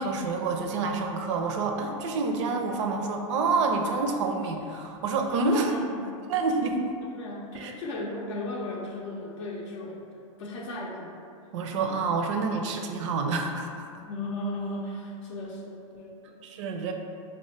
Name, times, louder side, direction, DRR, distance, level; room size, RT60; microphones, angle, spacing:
voice 1, 0.0-5.7 6.3-6.8 7.5-7.7 11.5-14.0 16.4-16.9, right 3 dB, 60° right, 4 dB, 0.5 m, -28 dB
voice 2, 5.4-6.1 7.0-10.0 10.4-11.1 14.0-16.4, left 1 dB, 60° left, -2 dB, 0.5 m, -36 dB
4.3 x 2.1 x 3.1 m, 2.5 s
hypercardioid pair, 120°, 17 cm